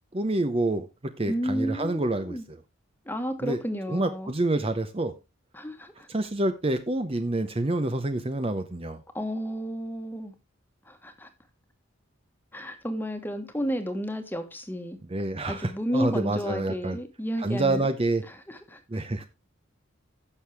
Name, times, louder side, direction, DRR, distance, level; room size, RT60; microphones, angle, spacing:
voice 1, 0.1-0.9 1.2-2.6 3.4-3.6 3.9-5.1 6.1-9.0 15.1-17.0 17.4-18.2 18.9-19.3, right 2 dB, 25° right, 0.7 m, -27 dB
voice 2, 1.3-2.4 3.1-4.3 5.5-6.1 9.1-10.3 10.9-11.3 12.5-15.0 15.5-17.9 18.3-18.8, equal, 10° left, 1.4 m, -32 dB
15.5 x 6.5 x 3.4 m
head